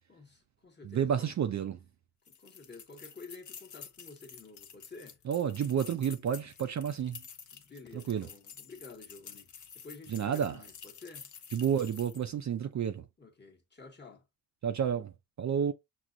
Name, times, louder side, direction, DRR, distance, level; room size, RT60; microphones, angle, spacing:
voice 1, 0.1-1.3 2.3-5.2 7.5-11.3 13.2-14.2, left 3 dB, 25° left, 1.1 m, -51 dB
voice 2, 0.8-1.8 5.3-7.2 7.9-8.3 10.1-10.6 11.5-13.0 14.6-15.1 15.4-15.7, right 8 dB, 45° right, 0.4 m, -30 dB
sound 1, 2.3-12.3, left 7 dB, 45° left, 0.7 m, -50 dB
5.9 x 2.1 x 2.5 m
cardioid pair, 90°, 42 cm